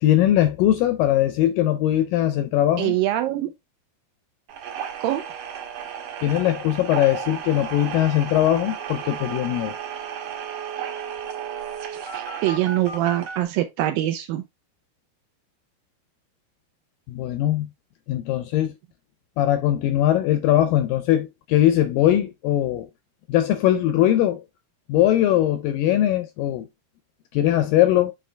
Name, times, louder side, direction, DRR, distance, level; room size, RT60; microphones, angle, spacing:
voice 1, 0.0-3.0 6.2-9.7 17.1-17.7 18.1-18.7 19.4-22.9 23.3-24.4 24.9-26.7 27.3-28.1, left 12 dB, 80° left, 2.0 m, -20 dB
voice 2, 2.8-3.5 5.0-5.2 12.1-14.4, right 14 dB, 80° right, 2.2 m, -24 dB
sound 1, 4.5-13.4, right 9 dB, 65° right, 2.6 m, -34 dB
sound 2, 8.1-8.2 8.4-8.5 8.8-13.4, right 5 dB, 45° right, 1.4 m, -37 dB
7.4 x 3.9 x 3.2 m
omnidirectional pair, 4.5 m